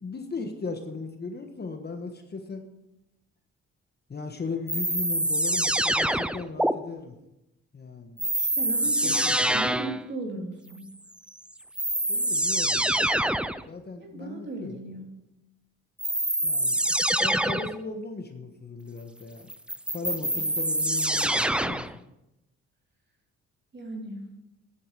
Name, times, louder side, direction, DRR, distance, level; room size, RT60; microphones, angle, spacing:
voice 1, 0.0-2.7 4.1-7.1 7.7-8.2 9.0-9.6 12.1-13.2 13.7-14.8 16.4-16.8 17.2-19.5 19.9-21.9, left 4 dB, 35° left, 6 dB, 1.4 m, -37 dB
sound 1, 4.7-6.7 8.2-10.0 11.3-11.4 11.8-13.6 16.0-17.8 19.5-21.9, right 1 dB, 5° right, 0.5 m, -25 dB
voice 2, 8.3-10.8 14.0-15.0 23.7-24.2, right 2 dB, 35° right, 0 dB, 3.3 m, -37 dB
12.0 x 8.7 x 4.9 m, 0.91 s
cardioid pair, 90°, 30 cm